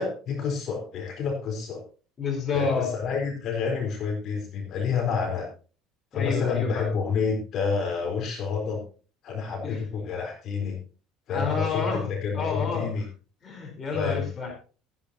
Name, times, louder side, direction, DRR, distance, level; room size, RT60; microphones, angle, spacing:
voice 1, 0.0-1.8 2.5-5.5 6.1-8.8 9.2-10.8 11.3-13.0 13.9-14.2, left 5 dB, 50° left, 1 dB, 4.2 m, -29 dB
voice 2, 2.2-2.9 6.1-6.9 9.6-9.8 11.3-12.1 12.3-12.9 13.4-14.5, left 5 dB, 30° left, 2 dB, 4.2 m, -29 dB
13.5 x 12.0 x 2.9 m, 0.36 s
hypercardioid pair, 65°, 0 cm